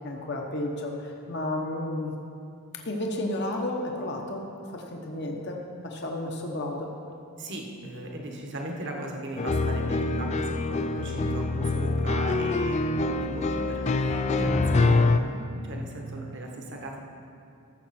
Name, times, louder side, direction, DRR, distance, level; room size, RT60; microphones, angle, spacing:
voice 1, 0.0-2.1 2.8-4.4 4.7-6.9, left 1 dB, 50° left, 1 dB, 1.0 m, -32 dB
voice 2, 7.4-12.8 13.2-17.0, right 1 dB, 55° right, 1 dB, 1.3 m, -37 dB
sound 1, 9.4-15.2, left 3 dB, 30° left, 0.3 m, -25 dB
14.0 x 7.3 x 4.3 m, 2.5 s
head